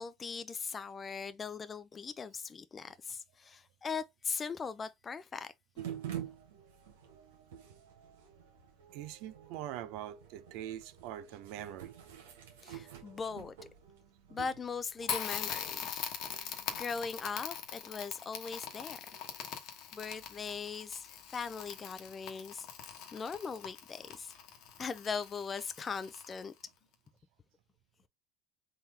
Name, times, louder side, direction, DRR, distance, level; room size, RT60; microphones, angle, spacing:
voice 1, 0.0-5.5 12.6-13.5 14.3-15.8 16.4-19.0 19.9-22.7 23.1-24.3 24.8-26.5, left 5 dB, 25° left, 0.3 m, -40 dB
sound 1, 5.8-17.1, right 10 dB, 90° right, 1.2 m, -48 dB
voice 2, 8.9-11.9 19.1-19.5, right 11 dB, 70° right, 0.5 m, -43 dB
Crackle, 15.0-26.6, left 8 dB, 60° left, 1.0 m, -42 dB
3.8 x 2.7 x 3.2 m
supercardioid pair, 100°, 0 cm